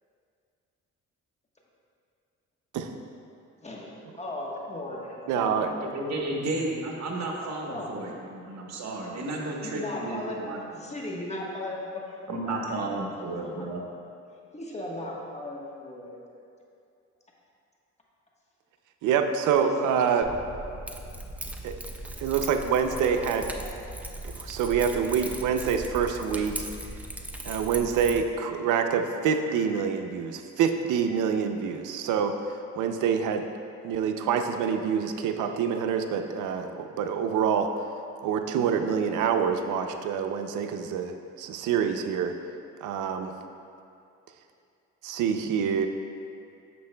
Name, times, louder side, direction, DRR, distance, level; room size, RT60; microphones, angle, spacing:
voice 1, 3.6-5.9 7.7-8.2 9.6-10.4 10.8-12.0 12.5-12.6 13.2-13.7 14.5-16.2 19.6-20.3 20.5-21.1 22.9-23.8, left 1 dB, 20° left, -3 dB, 1.2 m, -37 dB
voice 2, 5.3-5.7 19.0-20.3 21.6-21.8 22.2-23.5 24.2-26.7 27.4-32.3 32.8-33.4 33.8-37.7 38.2-42.3 42.8-43.3 45.0-45.9, right 7 dB, 80° right, 6 dB, 0.6 m, -26 dB
voice 3, 5.8-10.6 12.3-13.9, right 2 dB, 60° right, -1 dB, 1.2 m, -33 dB
Keys jangling, 20.2-28.2, right 1 dB, 5° right, 0.5 m, -38 dB
9.4 x 6.7 x 2.2 m, 2.5 s
cardioid pair, 90°, 30 cm